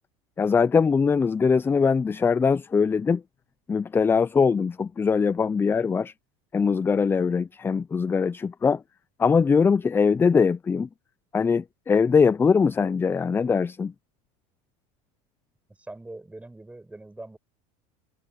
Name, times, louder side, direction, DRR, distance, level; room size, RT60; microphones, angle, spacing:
voice 1, 0.4-3.2 3.7-6.1 6.5-8.8 9.2-10.9 11.3-13.9, left 5 dB, 10° left, 0.3 m, -22 dB
voice 2, 15.7-17.4, right 2 dB, 5° right, 7.3 m, -42 dB
supercardioid pair, 125°, 18 cm